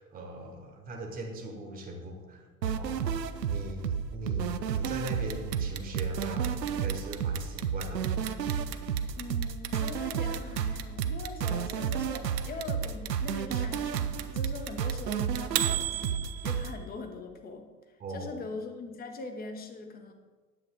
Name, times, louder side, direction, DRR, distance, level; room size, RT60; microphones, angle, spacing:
voice 1, 0.0-2.4 2.8-3.0 3.5-8.1 18.0-18.3, right 1 dB, 20° right, 1 dB, 1.3 m, -40 dB
sound 1, 2.6-16.7, right 7 dB, 80° right, 0.6 m, -31 dB
Clock, 4.8-16.8, right 14 dB, 40° right, 0.6 m, -35 dB
voice 2, 9.2-16.2 16.4-20.1, left 3 dB, 20° left, 5 dB, 1.0 m, -42 dB
9.8 x 7.8 x 3.6 m, 1.4 s
figure-of-eight pair, 85°, 49 cm